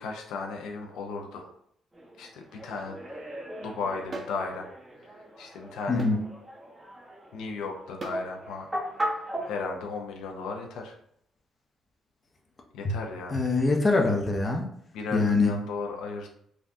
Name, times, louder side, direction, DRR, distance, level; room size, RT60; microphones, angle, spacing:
voice 1, 0.0-1.5 2.2-3.0 3.6-4.7 5.0-6.1 7.3-8.7 9.1-9.2 9.4-10.9 12.7-13.4 14.9-16.3, left 4 dB, 85° left, 2 dB, 0.4 m, -35 dB
sound 1, 1.9-9.6, equal, 15° right, 1.0 m, -38 dB
sound 2, 4.1-4.4 6.0-6.2 8.0-8.3, right 3 dB, 40° right, 0.4 m, -37 dB
voice 2, 13.3-14.7 15.1-15.5, left 3 dB, 35° left, 2 dB, 0.6 m, -23 dB
3.5 x 2.2 x 2.6 m, 0.69 s
cardioid pair, 90°, 0 cm